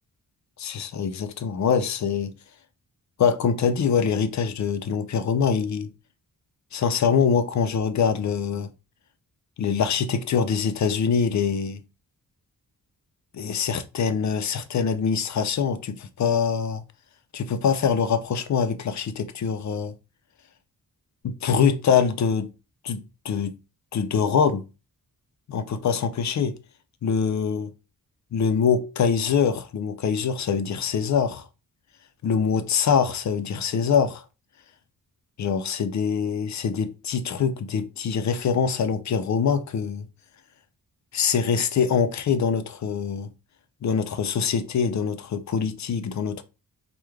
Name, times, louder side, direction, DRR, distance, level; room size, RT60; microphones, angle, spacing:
voice 1, 0.6-2.3 3.2-5.9 6.7-8.7 9.6-11.8 13.3-16.8 17.3-19.9 21.2-22.5 22.8-23.5 23.9-24.6 25.5-26.6 27.0-27.7 28.3-31.5 32.2-34.2 35.4-40.1 41.1-43.3 43.8-46.4, left 6 dB, 50° left, 0.4 m, -24 dB
3.1 x 2.2 x 3.4 m
wide cardioid pair, 130°, 36 cm